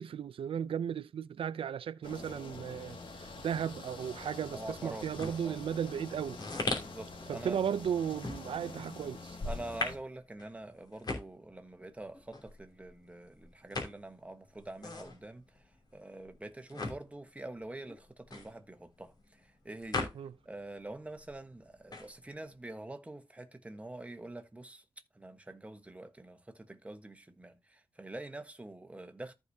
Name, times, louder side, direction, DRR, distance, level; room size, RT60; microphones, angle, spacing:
voice 1, 0.0-6.4 7.3-9.4 20.2-20.3, right 8 dB, 85° right, 0.4 m, -35 dB
sound 1, 2.0-10.0, left 3 dB, 70° left, 2.0 m, -47 dB
voice 2, 4.5-5.6 6.7-7.6 9.4-15.6 15.9-20.1 20.4-24.8 25.1-29.3, right 2 dB, 15° right, 1.1 m, -46 dB
sound 2, 5.1-20.7 21.0-22.5, left 3 dB, 50° left, 2.8 m, -40 dB
14.0 x 4.9 x 2.7 m
wide cardioid pair, 110°, 9 cm